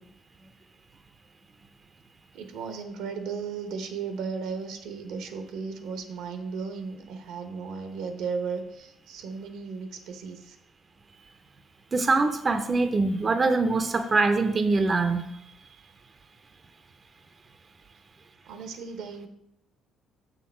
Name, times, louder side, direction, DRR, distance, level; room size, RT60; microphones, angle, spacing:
voice 1, 2.3-10.6 18.5-19.3, right 5 dB, 80° right, 7 dB, 0.9 m, -35 dB
voice 2, 11.9-15.2, right 3 dB, 35° right, 8 dB, 0.6 m, -23 dB
6.6 x 6.5 x 4.4 m, 0.80 s
cardioid pair, 85°, 0 cm